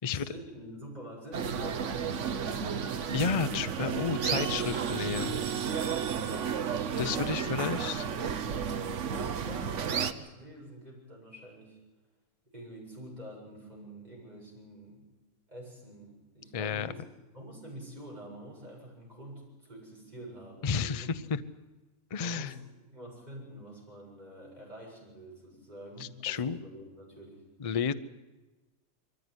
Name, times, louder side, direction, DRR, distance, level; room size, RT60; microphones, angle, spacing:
voice 1, 0.0-2.6 6.2-6.6 8.8-11.8 12.5-15.0 15.5-17.0 17.3-21.1 22.2-22.6 22.9-27.4, right 1 dB, 30° right, -3 dB, 7.5 m, -47 dB
sound 1, 1.3-10.1, right 7 dB, 60° right, 1.2 m, -32 dB
voice 2, 3.1-5.3 7.0-8.0 16.5-16.9 20.6-21.4 22.1-22.5 26.0-26.6 27.6-27.9, left 6 dB, 35° left, 12 dB, 0.6 m, -31 dB
22.5 x 15.0 x 9.7 m, 1.1 s
omnidirectional pair, 1.5 m